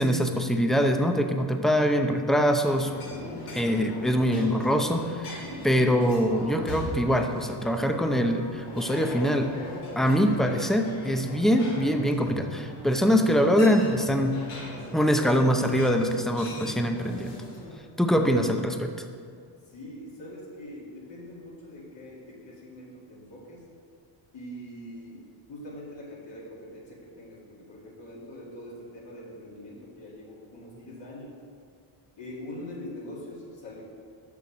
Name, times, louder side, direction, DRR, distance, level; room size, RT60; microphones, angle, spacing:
voice 1, 0.0-2.9 3.5-9.5 10.0-14.4 14.9-17.4 18.0-18.9, equal, ahead, 5 dB, 0.6 m, -23 dB
sound 1, 2.7-17.8, left 1 dB, 85° left, 2.6 m, -39 dB
voice 2, 19.7-23.7 24.3-31.3 32.2-33.8, left 1 dB, 60° left, -5 dB, 2.3 m, -43 dB
7.0 x 6.4 x 6.2 m, 2.1 s
cardioid pair, 105°, 50 cm